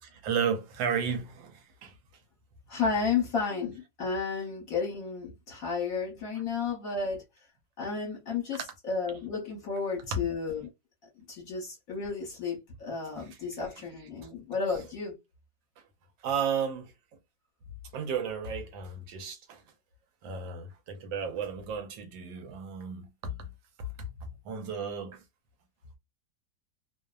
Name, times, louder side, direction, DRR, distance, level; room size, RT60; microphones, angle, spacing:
voice 1, 0.2-2.0 10.1-10.2 16.2-16.9 17.9-19.6 20.2-23.4 23.8-25.2, right 6 dB, 80° right, 1.3 m, -33 dB
voice 2, 2.7-7.2 7.8-10.7 11.3-15.2, left 5 dB, 50° left, 1.3 m, -32 dB
3.1 x 2.0 x 2.3 m
omnidirectional pair, 2.1 m